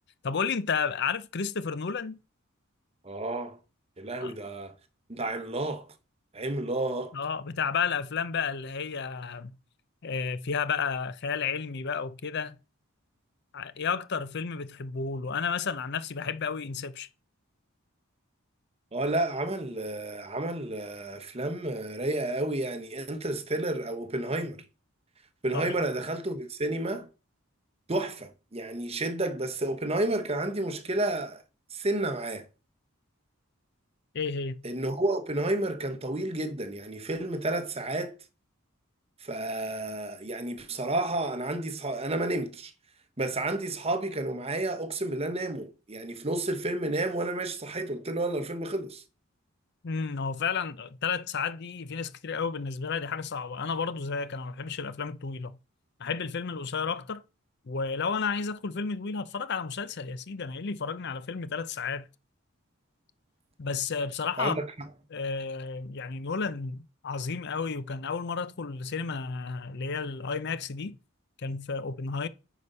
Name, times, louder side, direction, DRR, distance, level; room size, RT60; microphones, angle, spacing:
voice 1, 0.2-2.2 4.2-4.3 7.1-9.5 10.0-12.6 13.5-17.1 25.5-25.7 34.1-34.6 49.8-55.6 56.0-57.2 57.7-62.1 63.6-64.6 65.1-71.0 71.4-72.3, left 5 dB, 55° left, 0.6 m, -32 dB
voice 2, 3.0-3.6 4.0-4.7 5.1-5.9 6.3-7.2 18.9-24.6 25.4-27.1 27.9-31.4 31.7-32.5 34.6-38.2 39.2-42.7 43.2-49.0 64.4-64.7, right 2 dB, 30° right, 1.0 m, -31 dB
9.4 x 5.0 x 5.5 m
head